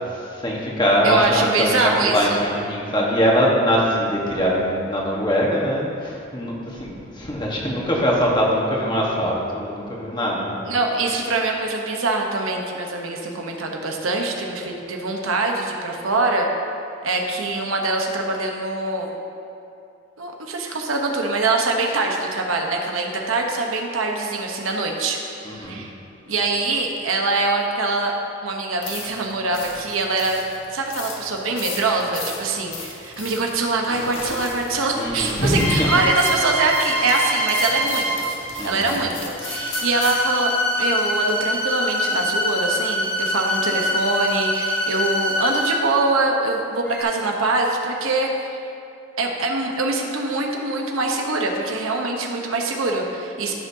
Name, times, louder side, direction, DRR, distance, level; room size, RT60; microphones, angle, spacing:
voice 1, 0.4-10.6 25.4-25.8 35.0-35.9 38.6-38.9, equal, 20° left, -3 dB, 1.3 m, -22 dB
voice 2, 1.0-2.4 10.6-16.5 17.0-19.1 20.2-25.9 26.3-28.1 28.4-30.4 30.7-48.5 49.2-53.5, right 3 dB, 85° right, 1 dB, 1.0 m, -24 dB
sound 1, 28.8-40.3, left 4 dB, 70° left, 1.4 m, -36 dB
sound 2, 35.5-38.4 39.4-46.0 46.9-47.0, equal, 5° left, 1.9 m, -24 dB
14.5 x 6.2 x 2.8 m, 2.6 s
head